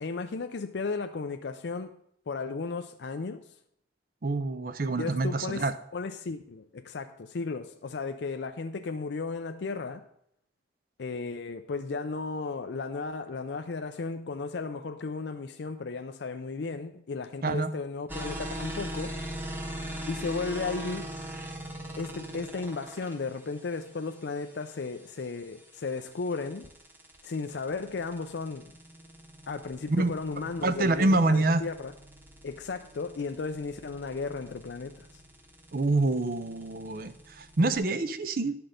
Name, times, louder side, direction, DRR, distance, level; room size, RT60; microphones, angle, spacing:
voice 1, 0.0-2.0 2.3-3.5 5.0-5.7 5.9-10.0 11.0-19.2 20.1-21.1 22.0-26.7 27.2-28.6 29.5-31.9 32.4-35.2, left 4 dB, 70° left, 0.5 m, -35 dB
voice 2, 4.2-5.7 17.4-17.7 29.9-30.1 30.6-31.6 35.7-38.6, right 2 dB, 50° right, 0.6 m, -26 dB
sound 1, 18.1-37.8, right 1 dB, 10° right, 1.0 m, -42 dB
11.5 x 6.1 x 5.0 m
head